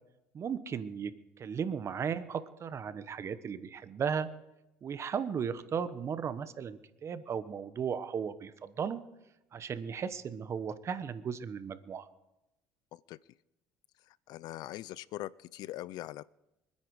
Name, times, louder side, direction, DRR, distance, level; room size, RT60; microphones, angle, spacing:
voice 1, 0.3-1.1 1.4-4.3 4.8-9.0 9.5-12.1, right 7 dB, 40° right, 13 dB, 1.1 m, -36 dB
voice 2, 14.3-16.3, left 15 dB, 70° left, 21 dB, 0.4 m, -42 dB
25.0 x 9.8 x 4.8 m, 0.93 s
cardioid pair, 100°, 7 cm